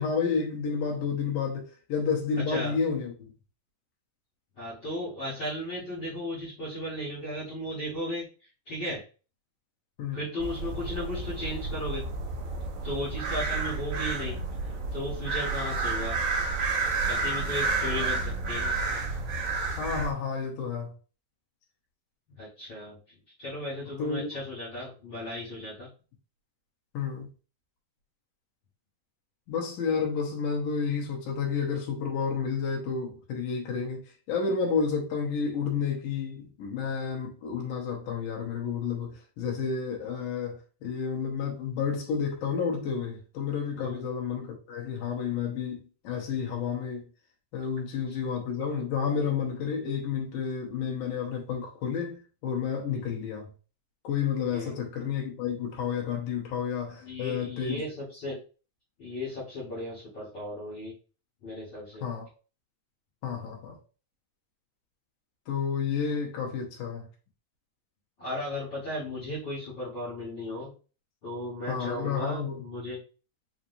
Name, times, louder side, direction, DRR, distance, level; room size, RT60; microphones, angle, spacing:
voice 1, 0.0-3.3 10.0-10.2 18.0-18.1 19.8-20.9 24.0-24.3 26.9-27.3 29.5-47.0 47.5-53.5 54.0-57.8 62.0-62.3 63.2-63.8 65.5-67.1 71.7-72.6, left 6 dB, 90° left, 2.6 m, -31 dB
voice 2, 4.6-8.3 8.7-9.0 10.1-12.0 12.8-14.4 14.9-16.2 17.0-18.7 22.4-23.0 23.4-25.9 43.8-44.0 54.5-54.8 57.0-58.4 59.0-60.9 61.4-62.1 68.2-70.7 71.2-73.0, left 1 dB, 45° left, 1.7 m, -35 dB
sound 1, 10.4-20.1, right 3 dB, 45° right, 2.5 m, -30 dB
5.7 x 3.0 x 2.6 m
omnidirectional pair, 3.5 m